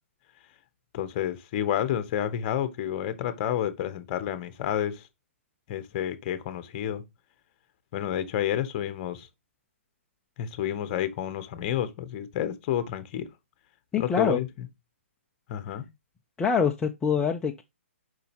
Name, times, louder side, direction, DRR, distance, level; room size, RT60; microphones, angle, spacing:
voice 1, 0.9-5.0 5.7-7.0 7.9-9.3 10.4-13.3 14.0-14.5 15.5-15.9, left 10 dB, 35° left, 1.1 m, -30 dB
voice 2, 13.9-14.4 16.4-17.6, left 6 dB, 10° left, 0.5 m, -25 dB
6.7 x 5.3 x 2.9 m
hypercardioid pair, 140°, 7 cm